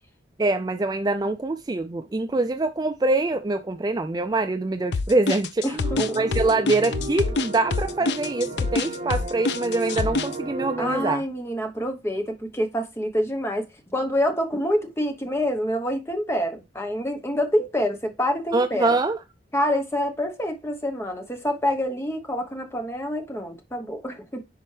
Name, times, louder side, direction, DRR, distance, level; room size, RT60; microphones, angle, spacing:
voice 1, 0.4-11.2 18.5-19.2, right 2 dB, 20° right, 0.3 m, -24 dB
sound 1, 4.9-10.3, left 4 dB, 65° left, 0.5 m, -25 dB
voice 2, 5.6-6.4 10.8-13.7 13.9-19.0 19.5-24.4, equal, 15° left, 0.9 m, -27 dB
sound 2, 5.8-11.1, right 2 dB, 45° right, 2.2 m, -34 dB
10.5 x 4.2 x 3.3 m
head